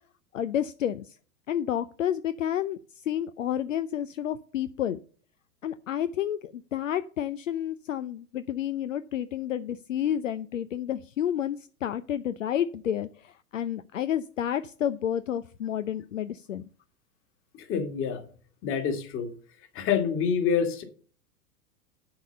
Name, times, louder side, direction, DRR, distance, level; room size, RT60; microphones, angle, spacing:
voice 1, 0.3-1.1 1.5-2.8 3.1-5.0 5.6-16.6, left 10 dB, 65° left, 13 dB, 0.7 m, -30 dB
voice 2, 17.7-18.2 18.6-19.3 19.8-20.8, left 7 dB, 30° left, 7 dB, 1.9 m, -26 dB
10.5 x 4.9 x 6.6 m, 0.42 s
figure-of-eight pair, 95°, 42 cm